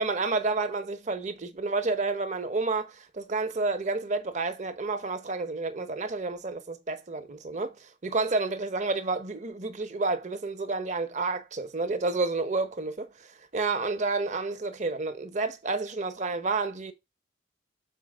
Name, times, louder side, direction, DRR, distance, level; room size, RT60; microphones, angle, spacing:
voice 1, 0.0-16.9, right 3 dB, 40° right, 0.9 m, -30 dB
7.3 x 4.4 x 4.9 m
head